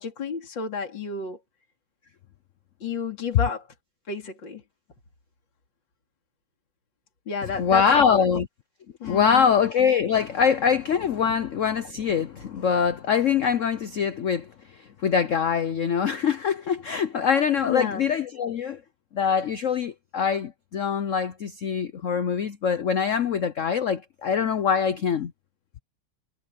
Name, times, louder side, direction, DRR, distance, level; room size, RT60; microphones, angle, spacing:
voice 1, 0.0-1.4 2.8-3.7 4.1-4.6 7.3-8.3 9.0-9.5 17.7-18.1, left 5 dB, 60° left, 3.7 m, -31 dB
voice 2, 7.6-8.5 9.0-14.5 14.8-18.8 19.1-25.3, left 7 dB, 85° left, 0.6 m, -23 dB
omnidirectional pair, 2.3 m